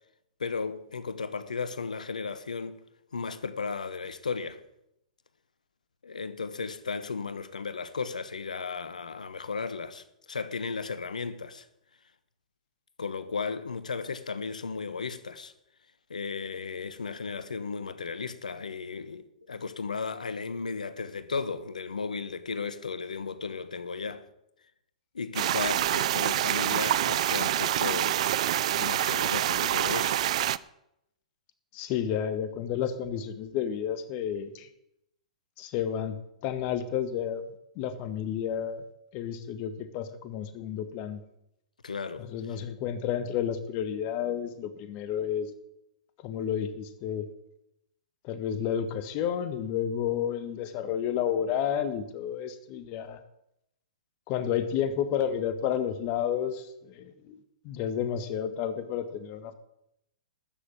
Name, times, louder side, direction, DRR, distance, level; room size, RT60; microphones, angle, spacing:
voice 1, 0.4-2.8 3.1-4.6 6.0-11.6 13.0-15.5 16.1-24.2 25.1-28.2 28.8-30.2 41.8-42.6, left 5 dB, 85° left, 1.1 m, -35 dB
sound 1, 25.4-30.6, right 12 dB, 60° right, 0.5 m, -26 dB
voice 2, 31.7-34.7 35.6-36.2 36.4-37.4 37.7-38.9 39.1-41.2 42.2-45.5 46.2-47.3 48.2-53.2 54.3-57.4 57.6-59.5, left 9 dB, 40° left, 1.6 m, -31 dB
13.0 x 6.7 x 9.3 m
hypercardioid pair, 115°, 4 cm